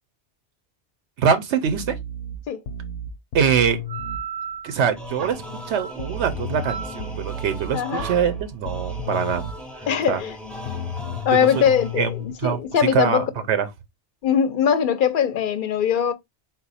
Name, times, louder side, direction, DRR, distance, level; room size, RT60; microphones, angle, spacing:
voice 1, 1.2-1.9 3.3-3.8 4.6-5.4 5.7-9.5 10.1-10.2 11.3-11.5 11.9-12.1 12.4-12.6 12.9-13.7, right 7 dB, 85° right, 1.0 m, -23 dB
sound 1, 1.7-4.2 6.0-9.6 10.7-12.3, left 1 dB, 90° left, 0.9 m, -33 dB
sound 2, 3.7-12.9, right 7 dB, 55° right, 0.4 m, -38 dB
sound 3, 5.0-12.3, left 1 dB, ahead, 0.7 m, -39 dB
voice 2, 7.7-8.1 9.9-10.4 11.2-13.2 14.2-16.1, left 8 dB, 60° left, 0.6 m, -21 dB
4.0 x 2.3 x 4.0 m
omnidirectional pair, 1.1 m